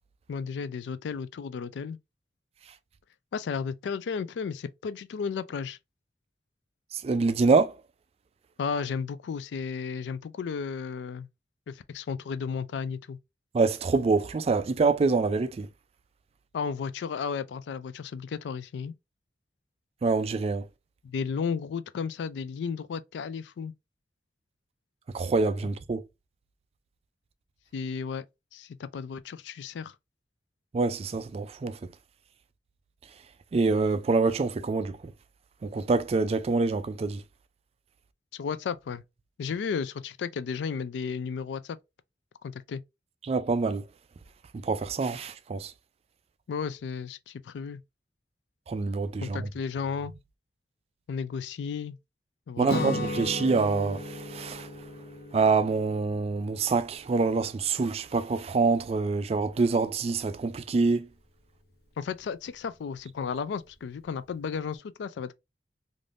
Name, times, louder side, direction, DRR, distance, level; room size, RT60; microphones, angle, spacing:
voice 1, 0.3-2.0 3.3-5.8 8.6-11.3 11.7-13.2 16.5-18.9 21.0-23.7 27.7-28.2 28.5-29.9 38.3-39.0 39.4-41.8 42.4-42.8 46.5-47.8 49.2-50.1 51.1-52.0 52.5-53.0 62.0-65.4, left 6 dB, 80° left, 0.3 m, -33 dB
voice 2, 6.9-7.8 13.5-15.7 20.0-20.6 25.1-26.0 30.7-31.8 33.5-35.0 35.6-37.2 43.2-43.8 44.6-45.7 48.7-49.5 52.6-54.7 55.3-61.1, right 4 dB, 35° right, 0.3 m, -26 dB
Guitar, 52.6-58.5, left 1 dB, 60° left, 0.7 m, -38 dB
3.3 x 2.5 x 2.4 m
head